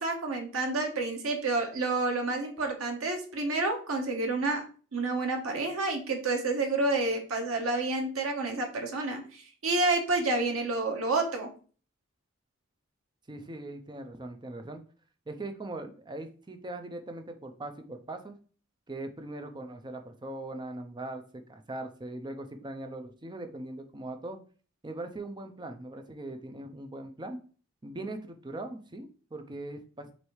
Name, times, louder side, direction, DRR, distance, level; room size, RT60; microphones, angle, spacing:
voice 1, 0.0-4.6 4.9-11.5, right 2 dB, 85° right, 3 dB, 1.1 m, -29 dB
voice 2, 13.3-14.8 15.3-18.4 18.9-24.4 24.8-27.4 27.8-30.1, right 2 dB, 20° right, 6 dB, 0.5 m, -40 dB
6.2 x 2.7 x 3.1 m, 0.40 s
head